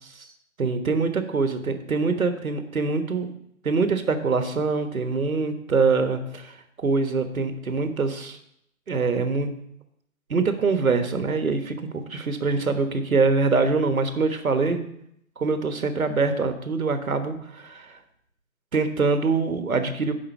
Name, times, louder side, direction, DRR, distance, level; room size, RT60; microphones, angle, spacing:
voice 1, 0.6-3.3 3.6-8.4 8.9-9.5 10.3-14.8 15.4-18.0 18.7-20.1, right 4 dB, 85° right, 8 dB, 1.4 m, -24 dB
9.9 x 3.9 x 6.8 m, 0.74 s
figure-of-eight pair, 155°, 41 cm